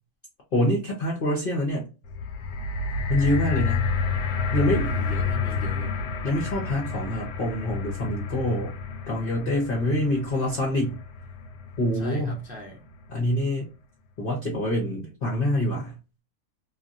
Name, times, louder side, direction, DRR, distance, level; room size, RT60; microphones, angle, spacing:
voice 1, 0.5-1.9 3.1-3.9 4.5-4.9 6.2-8.7 9.1-11.0 11.8-12.4 13.1-13.7 14.2-15.9, left 1 dB, 45° left, 0.8 m, -25 dB
sound 1, 2.0-12.3 13.0-13.1, left 4 dB, 75° left, 1.1 m, -30 dB
voice 2, 4.7-5.9 11.9-12.8, right 1 dB, 10° right, 0.3 m, -38 dB
2.8 x 2.6 x 2.5 m
omnidirectional pair, 1.9 m